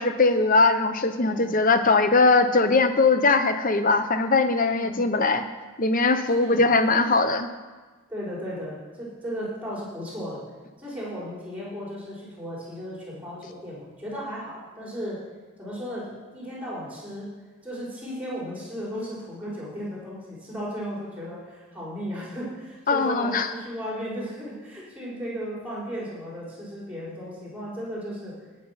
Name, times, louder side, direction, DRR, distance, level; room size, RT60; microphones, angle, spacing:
voice 1, 0.0-5.4 5.8-7.5 22.9-23.5, left 3 dB, 40° left, 9 dB, 0.9 m, -20 dB
voice 2, 1.2-1.6 4.8-5.1 6.3-7.1 8.1-10.4 10.8-15.2 15.6-17.3 17.6-28.3, equal, 5° right, -6 dB, 5.1 m, -35 dB
17.5 x 7.6 x 6.0 m, 1.3 s
head